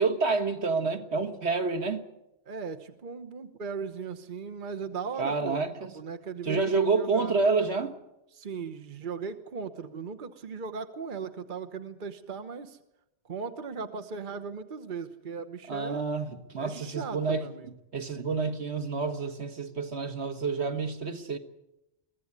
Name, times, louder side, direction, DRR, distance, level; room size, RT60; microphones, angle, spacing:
voice 1, 0.0-2.1 5.2-6.0 6.4-8.0 15.7-17.4 17.9-21.4, right 4 dB, 75° right, 1.9 m, -28 dB
voice 2, 2.5-7.4 8.3-12.8 13.2-16.0 16.6-17.7, right 5 dB, 50° right, 1.2 m, -38 dB
23.0 x 16.0 x 9.7 m
omnidirectional pair, 1.1 m